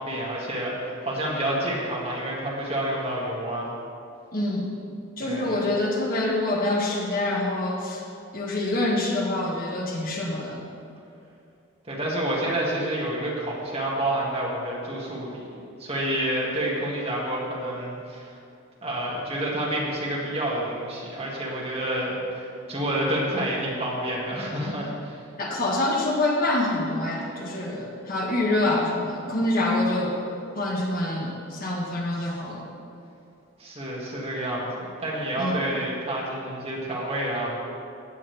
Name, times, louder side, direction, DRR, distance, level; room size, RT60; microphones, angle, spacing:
voice 1, 0.0-3.7 5.2-5.6 11.9-18.4 18.8-25.2 33.6-37.5, right 1 dB, 30° right, -5 dB, 2.1 m, -29 dB
voice 2, 4.3-4.7 5.2-8.0 8.3-10.6 25.4-30.2 30.5-32.7 35.4-35.6, left 2 dB, 45° left, -2 dB, 1.5 m, -26 dB
16.0 x 8.8 x 3.5 m, 2.6 s
head